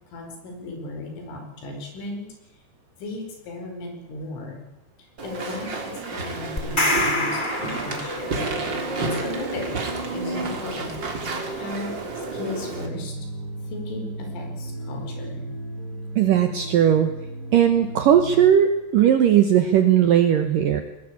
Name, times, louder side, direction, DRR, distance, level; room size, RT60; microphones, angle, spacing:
voice 1, 0.1-2.3 3.0-4.6 5.0-8.4 9.0-9.8 10.1-11.2 11.6-13.2 13.6-15.4, left 2 dB, 80° left, 4 dB, 7.1 m, -36 dB
Walk footsteps / Chatter / Squeak, 5.2-12.9, right 3 dB, 30° right, 2.7 m, -30 dB
sound 1, 6.6-8.5, left 1 dB, 15° left, 1.7 m, -25 dB
sound 2, 12.7-18.5, right 1 dB, 60° left, 6.8 m, -35 dB
voice 2, 16.2-17.1 17.5-20.8, right 9 dB, 70° right, 7 dB, 2.1 m, -18 dB
20.5 x 20.0 x 8.6 m, 0.99 s
omnidirectional pair, 5.5 m